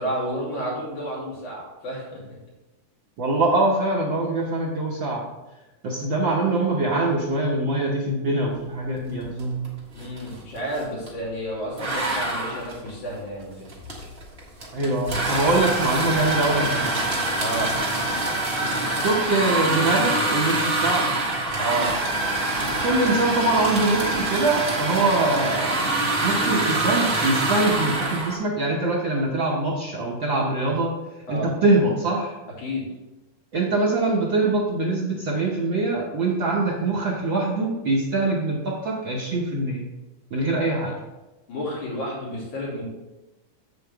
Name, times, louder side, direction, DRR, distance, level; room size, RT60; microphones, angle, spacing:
voice 1, 0.0-2.2 9.9-13.7 17.4-17.7 21.6-21.9 31.3-31.5 32.6-32.9 41.5-42.8, equal, 70° left, -6 dB, 4.2 m, -30 dB
voice 2, 3.2-5.3 5.8-9.7 14.7-17.0 19.0-21.1 22.6-25.8 26.2-30.9 31.3-32.3 33.5-39.9 40.3-41.0, right 2 dB, 80° right, -3 dB, 1.0 m, -23 dB
sound 1, 9.4-9.7 9.9-11.2 11.8-28.4, right 2 dB, 35° right, 1.0 m, -25 dB
7.6 x 7.6 x 3.4 m, 1.1 s
omnidirectional pair, 3.5 m